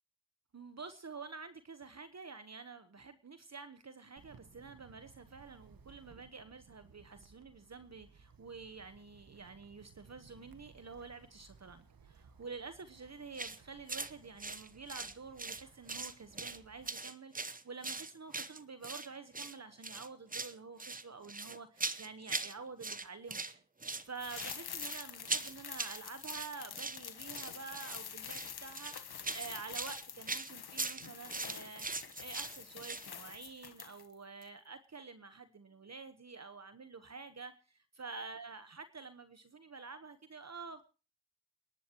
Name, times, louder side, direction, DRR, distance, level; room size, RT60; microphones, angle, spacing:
voice 1, 0.5-23.5 23.8-31.9 32.2-40.9, right 4 dB, 45° right, 10 dB, 1.1 m, -49 dB
Wind, 4.2-16.9, right 5 dB, 65° right, 1.3 m, -61 dB
sound 1, 13.3-13.6 13.9-14.1 14.4-15.6 15.9-16.6 16.9-19.1 19.3-19.6 19.8-20.5 20.8-22.5 22.8-23.5 23.8-33.1, right 3 dB, 20° right, 0.9 m, -40 dB
sound 2, 24.2-34.1 34.4-34.5, left 7 dB, 80° left, 1.3 m, -47 dB
28.5 x 11.0 x 3.0 m, 0.34 s
cardioid pair, 50°, 37 cm